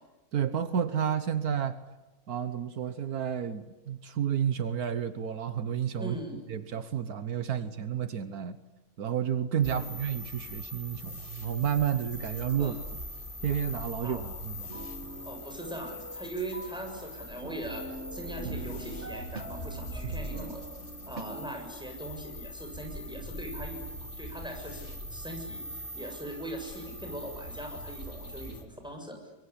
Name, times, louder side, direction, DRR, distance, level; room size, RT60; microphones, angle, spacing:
voice 1, 0.3-1.8 2.3-6.1 6.5-8.6 9.0-12.7 13.4-14.7, right 8 dB, 75° right, 11 dB, 1.6 m, -31 dB
voice 2, 6.0-6.4 9.7-10.0 12.6-12.8 14.0-14.2 15.3-17.8 18.1-20.6 21.1-29.2, right 1 dB, 5° right, 3 dB, 7.2 m, -40 dB
sound 1, 9.6-28.6, left 1 dB, 35° left, 2.8 m, -42 dB
sound 2, 14.6-21.6, right 3 dB, 50° right, 1.9 m, -42 dB
25.5 x 23.0 x 10.0 m, 1.1 s
omnidirectional pair, 1.6 m